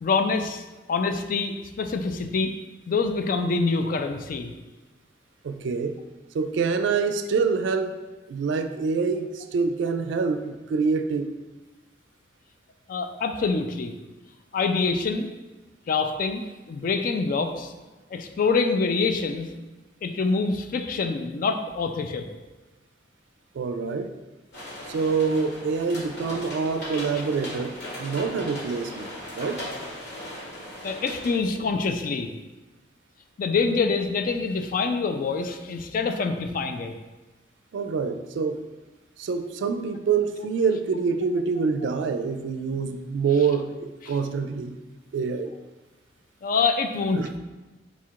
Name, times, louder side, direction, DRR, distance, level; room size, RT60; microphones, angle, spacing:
voice 1, 0.0-2.5 2.9-4.5 12.9-13.9 14.5-15.3 15.9-17.7 18.1-19.5 20.0-22.3 30.8-32.3 33.4-36.9 46.4-47.2, left 4 dB, 50° left, 6 dB, 0.3 m, -25 dB
voice 2, 5.4-6.0 6.3-11.3 23.5-24.1 24.9-29.6 37.7-38.7 39.2-44.8 45.1-45.5 47.1-47.4, right 5 dB, 80° right, 9 dB, 0.3 m, -26 dB
sound 1, 24.5-31.3, left 1 dB, 70° left, 1.4 m, -38 dB
4.1 x 2.4 x 4.5 m, 1.2 s
head